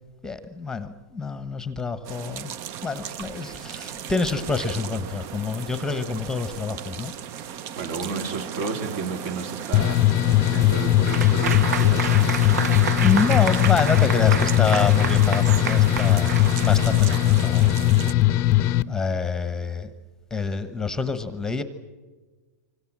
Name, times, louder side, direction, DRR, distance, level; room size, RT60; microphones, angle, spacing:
voice 1, 0.2-2.5 2.8-7.1 13.0-19.9 20.3-21.6, left 4 dB, 5° left, 12 dB, 1.1 m, -27 dB
sound 1, 2.0-18.1, right 9 dB, 35° right, 0.8 m, -36 dB
voice 2, 7.7-10.1 10.5-12.3, right 4 dB, 55° right, 7 dB, 3.4 m, -32 dB
sound 2, 9.7-18.8, left 15 dB, 30° left, 0.7 m, -19 dB
Applause / Crowd, 11.1-17.9, right 7 dB, 80° right, 1.1 m, -30 dB
25.5 x 25.5 x 7.4 m, 1.3 s
hypercardioid pair, 145°, 9 cm